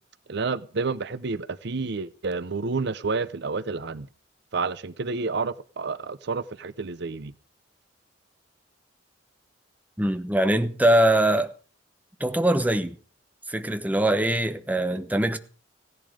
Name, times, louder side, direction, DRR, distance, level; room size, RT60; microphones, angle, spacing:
voice 1, 0.3-4.1 4.5-7.3, right 4 dB, 65° right, 0.7 m, -29 dB
voice 2, 10.0-11.5 12.2-13.0 13.5-15.4, right 1 dB, 10° right, 1.0 m, -22 dB
16.0 x 11.0 x 5.0 m
head